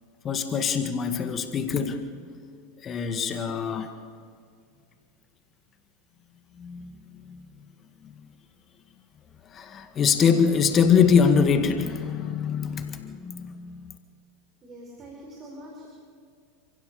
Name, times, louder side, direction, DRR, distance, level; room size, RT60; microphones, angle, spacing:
voice 1, 0.2-2.0 2.8-3.9 6.6-7.5 9.5-13.9, left 6 dB, 35° left, 7 dB, 1.8 m, -24 dB
voice 2, 14.6-15.9, right 1 dB, 30° right, -1 dB, 5.4 m, -44 dB
28.5 x 16.0 x 7.0 m, 2.2 s
hypercardioid pair, 90°, 0 cm